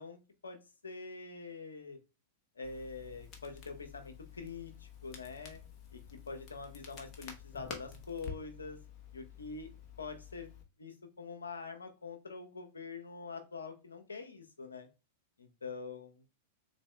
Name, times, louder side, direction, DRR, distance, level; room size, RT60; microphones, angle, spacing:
voice 1, 0.0-2.0 2.6-5.6 5.9-6.0 6.3-8.8 9.1-9.7 10.0-10.5 10.8-14.9 15.4-16.1, left 4 dB, 85° left, 5 dB, 0.7 m, -45 dB
Crackle, 2.6-10.6, left 6 dB, 35° left, 0.9 m, -50 dB
3.8 x 2.6 x 3.2 m, 0.29 s
hypercardioid pair, 105°, 0 cm